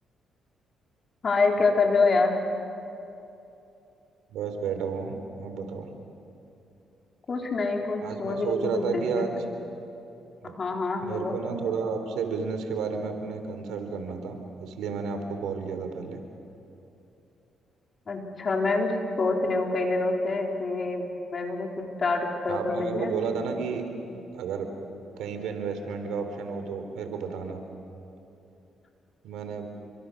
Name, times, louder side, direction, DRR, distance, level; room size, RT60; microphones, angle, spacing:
voice 1, 1.2-2.3 7.3-9.3 10.4-11.4 18.1-18.9 19.2-23.1 24.1-24.2, left 3 dB, 45° left, 1 dB, 4.0 m, -26 dB
voice 2, 4.3-5.9 8.0-9.3 10.4-10.5 11.0-16.2 22.5-23.8 24.3-24.7 25.2-27.6 29.2-29.7, right 5 dB, 85° right, 6 dB, 3.3 m, -32 dB
29.5 x 24.5 x 6.4 m, 2.8 s
cardioid pair, 85°, 0 cm